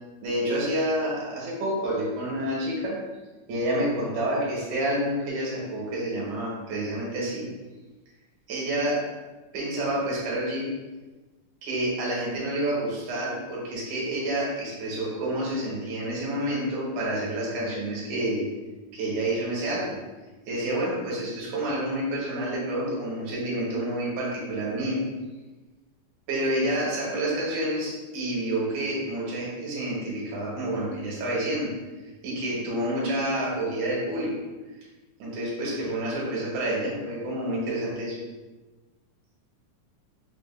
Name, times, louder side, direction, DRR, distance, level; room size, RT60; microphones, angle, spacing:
voice 1, 0.2-3.0 3.5-7.5 8.5-9.1 9.5-10.7 11.6-18.5 18.9-20.0 20.5-25.0 26.3-31.7 32.2-34.3 35.2-38.2, right 1 dB, 70° right, -5 dB, 2.4 m, -28 dB
5.9 x 2.5 x 2.5 m, 1.2 s
omnidirectional pair, 4.0 m